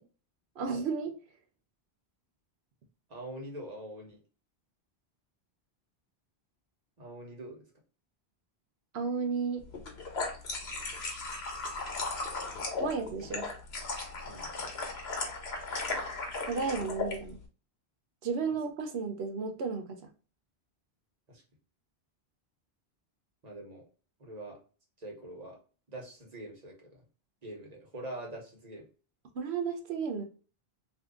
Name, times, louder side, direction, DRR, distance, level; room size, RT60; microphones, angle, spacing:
voice 1, 0.6-1.2 8.9-9.6 12.8-13.5 16.5-17.4 18.2-20.0 29.3-30.2, right 5 dB, 80° right, 6 dB, 1.0 m, -33 dB
voice 2, 3.1-4.2 7.0-7.6 14.2-14.5 21.3-21.4 23.4-23.8 24.2-24.6 25.0-25.6 25.9-27.0 27.4-28.8, right 1 dB, 40° right, 0 dB, 1.1 m, -44 dB
sound 1, 9.7-17.2, left 3 dB, 75° left, 1.2 m, -36 dB
2.7 x 2.5 x 3.6 m, 0.37 s
omnidirectional pair, 1.1 m